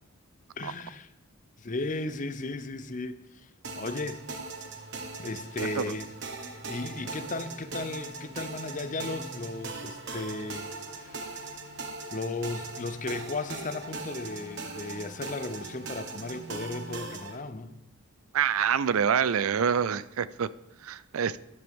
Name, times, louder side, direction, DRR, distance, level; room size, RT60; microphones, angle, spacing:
voice 1, 0.6-1.1 1.6-3.5 3.8-4.2 5.2-6.1 6.4-10.7 11.0-11.5 12.1-17.8, left 2 dB, 35° left, 0.6 m, -35 dB
sound 1, 3.6-17.4, right 3 dB, 55° right, 1.3 m, -40 dB
voice 2, 18.3-20.5 20.8-21.4, right 7 dB, 75° right, 0.4 m, -26 dB
13.0 x 10.5 x 3.6 m
head